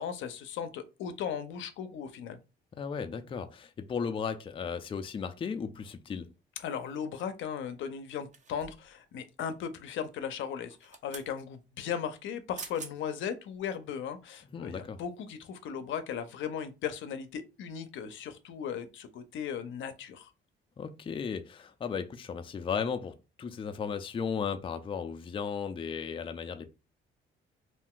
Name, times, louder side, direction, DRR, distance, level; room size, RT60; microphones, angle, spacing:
voice 1, 0.0-2.4 6.6-20.3, left 8 dB, 75° left, 0.5 m, -37 dB
voice 2, 2.8-6.3 14.5-15.0 20.8-26.7, left 6 dB, 25° left, 0.4 m, -35 dB
sound 1, 8.3-8.9 10.6-11.3 12.3-12.4 12.6-12.9 13.5-13.6, right 5 dB, 40° right, 0.6 m, -45 dB
2.5 x 2.2 x 3.6 m
cardioid pair, 90°, 20 cm